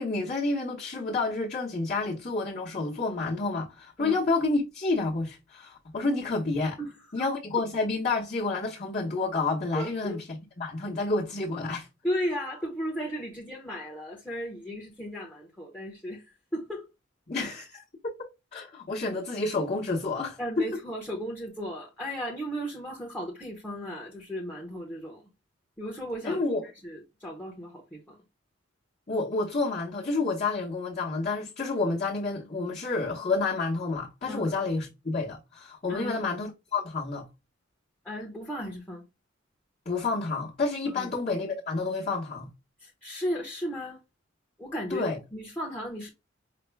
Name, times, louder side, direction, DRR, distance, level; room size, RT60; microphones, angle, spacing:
voice 1, 0.0-6.8 7.1-11.9 17.3-18.1 18.5-20.6 26.2-26.6 29.1-37.3 39.8-42.5 44.9-45.2, left 3 dB, 40° left, 1.0 m, -29 dB
voice 2, 6.8-7.3 9.7-10.2 12.0-16.2 16.5-16.9 20.4-25.2 25.8-26.4 26.8-28.2 34.3-34.5 35.9-36.2 38.0-39.0 40.9-41.1 42.8-44.0 44.6-46.1, equal, 10° left, 0.8 m, -35 dB
5.0 x 2.2 x 3.3 m
head